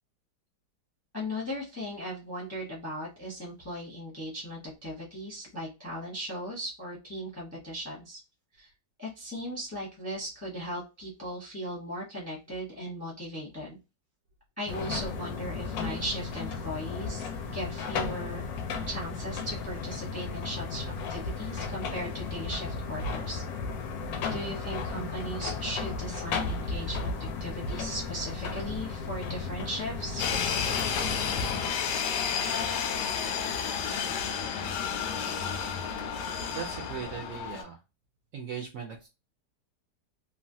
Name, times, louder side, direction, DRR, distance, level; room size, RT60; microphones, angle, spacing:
voice 1, 1.1-8.2 8.6-8.7 9.0-13.8 14.6-18.4 18.9-20.8 21.1-23.4 24.3-27.1 27.4-30.3, equal, 15° left, -4 dB, 0.5 m, -37 dB
sound 1, 14.7-31.7, left 4 dB, 70° left, 1.0 m, -34 dB
sound 2, 30.2-37.6, left 7 dB, 90° left, 1.2 m, -31 dB
voice 2, 36.5-37.8 38.3-39.1, right 7 dB, 70° right, 2 dB, 0.8 m, -38 dB
3.1 x 2.2 x 2.6 m, 0.27 s
omnidirectional pair, 1.8 m